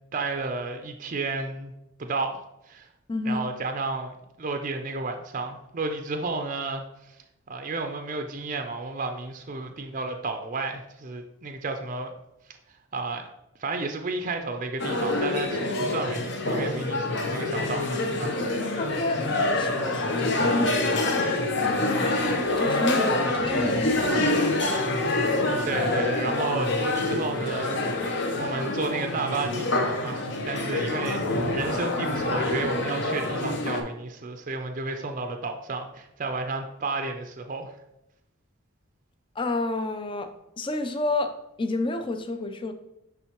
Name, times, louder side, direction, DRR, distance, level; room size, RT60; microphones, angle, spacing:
voice 1, 0.1-1.7 2.0-2.9 3.2-7.2 7.5-12.2 12.9-13.3 13.6-18.4 25.6-28.1 28.4-37.7, right 3 dB, 40° right, 5 dB, 0.5 m, -32 dB
voice 2, 3.1-3.5 18.8-21.1 21.6-22.1 22.6-24.6 39.4-40.3 40.6-42.7, left 2 dB, 25° left, 8 dB, 0.4 m, -30 dB
sound 1, 14.8-33.8, left 2 dB, 55° left, 0.8 m, -26 dB
10.0 x 3.6 x 3.0 m, 0.87 s
head